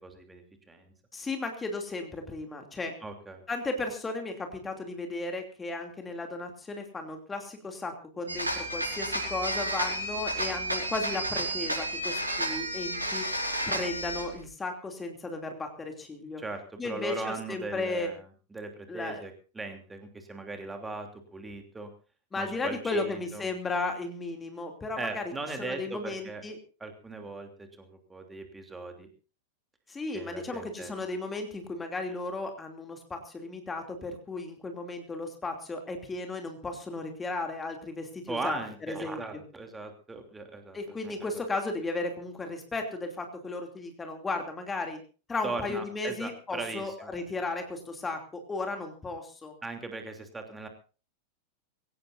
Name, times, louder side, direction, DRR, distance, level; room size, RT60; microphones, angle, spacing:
voice 1, 0.0-0.9 3.0-3.4 16.4-18.2 18.5-21.9 22.3-23.5 25.0-26.4 26.8-29.1 30.1-31.1 38.3-41.3 45.4-47.1 49.6-50.7, right 3 dB, 10° right, 5 dB, 3.1 m, -39 dB
voice 2, 1.1-3.0 3.5-13.3 13.7-16.4 16.8-18.1 18.9-19.2 22.3-25.2 25.6-26.6 29.9-38.6 38.9-39.2 40.7-45.0 45.3-49.5, left 3 dB, 15° left, 4 dB, 2.9 m, -35 dB
sound 1, 8.3-14.4, right 1 dB, 85° right, 5.0 m, -31 dB
22.5 x 17.5 x 2.7 m, 0.35 s
figure-of-eight pair, 90°, 0 cm